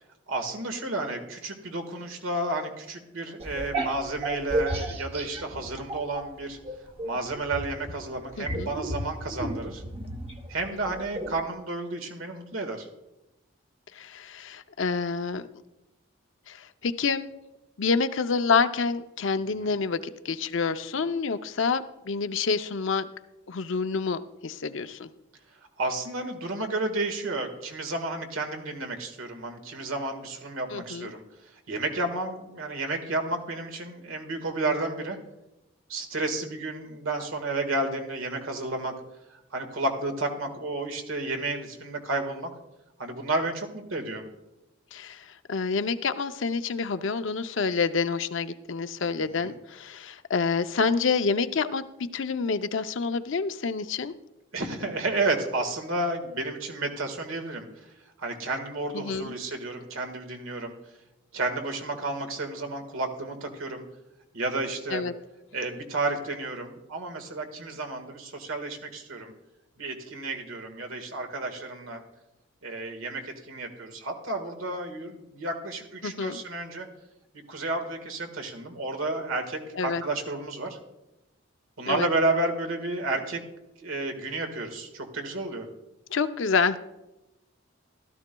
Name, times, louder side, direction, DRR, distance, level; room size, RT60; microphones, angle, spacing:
voice 1, 0.3-6.6 7.0-9.8 10.5-12.9 19.6-19.7 25.8-31.2 31.7-35.2 35.9-38.9 39.3-42.5 43.0-44.3 49.2-49.5 54.5-57.7 58.2-60.7 61.3-63.8 64.3-65.0 65.5-69.3 69.8-72.0 72.6-76.9 77.5-80.8 81.8-83.4 83.8-85.7, right 2 dB, 80° right, 5 dB, 1.7 m, -31 dB
sound 1, 3.4-6.3 6.6-11.4, right 1 dB, 25° right, 0.8 m, -33 dB
voice 2, 8.4-8.7 13.9-15.5 16.5-17.3 17.8-23.1 23.5-25.1 30.7-31.1 44.9-51.8 52.1-54.1 58.9-59.3 64.9-65.1 76.0-76.4 79.8-80.0 81.9-82.1 86.1-86.8, left 5 dB, 65° left, 10 dB, 0.5 m, -28 dB
15.5 x 13.0 x 2.2 m, 0.96 s
head